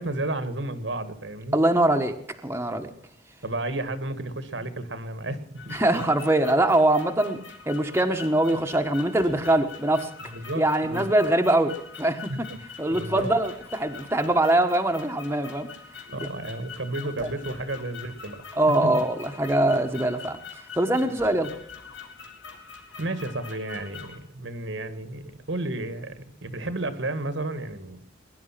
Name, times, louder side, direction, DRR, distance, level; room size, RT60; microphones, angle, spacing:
voice 1, 0.0-1.6 3.4-6.2 10.3-11.2 12.3-12.6 12.9-13.3 16.1-18.4 18.8-18.9 23.0-28.0, right 2 dB, 75° right, 11 dB, 1.8 m, -32 dB
voice 2, 1.5-2.1 2.4-2.9 5.7-7.4 7.7-10.1 10.6-12.3 12.8-15.7 16.2-16.3 17.2-17.3 18.6-20.4 20.8-21.5, right 1 dB, 15° right, 4 dB, 1.3 m, -23 dB
sound 1, 5.5-24.2, left 6 dB, 90° left, 3.4 m, -44 dB
21.0 x 11.0 x 5.9 m, 0.68 s
head